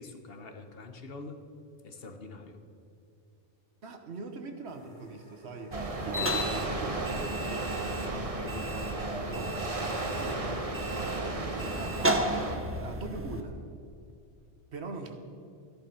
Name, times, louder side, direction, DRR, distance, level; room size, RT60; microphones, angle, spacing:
voice 1, 0.0-1.4 1.8-2.6 6.2-6.4, left 3 dB, 60° left, 6 dB, 1.2 m, -44 dB
voice 2, 3.8-5.8 6.0-12.4 12.8-13.6 14.7-15.2, right 4 dB, 70° right, 6 dB, 1.4 m, -42 dB
sound 1, 4.6-11.3, right 1 dB, 35° left, 3.1 m, -57 dB
sound 2, 5.7-13.4, equal, 15° right, 0.8 m, -34 dB
sound 3, 5.7-12.6, right 2 dB, 30° right, 1.2 m, -34 dB
13.5 x 10.5 x 5.5 m, 2.5 s
omnidirectional pair, 1.2 m